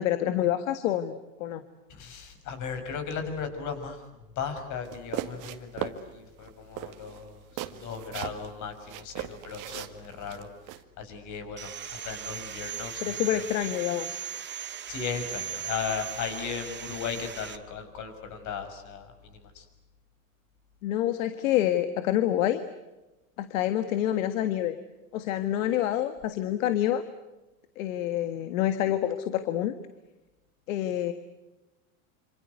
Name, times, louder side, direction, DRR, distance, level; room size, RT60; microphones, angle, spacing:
voice 1, 0.0-1.6 13.0-14.2 20.8-22.6 23.4-24.8 25.1-27.0 27.8-29.7 30.7-31.1, left 12 dB, 75° left, 10 dB, 1.8 m, -27 dB
voice 2, 1.9-4.0 4.4-13.7 14.9-19.7, left 6 dB, 45° left, 8 dB, 6.1 m, -37 dB
sound 1, 4.8-6.0 6.4-6.5 6.8-8.5 8.9-10.8, right 13 dB, 50° right, 2.0 m, -37 dB
Sawing, 11.6-17.6, right 9 dB, 25° right, 1.9 m, -38 dB
27.0 x 27.0 x 8.1 m, 1.1 s
hypercardioid pair, 110°, 40 cm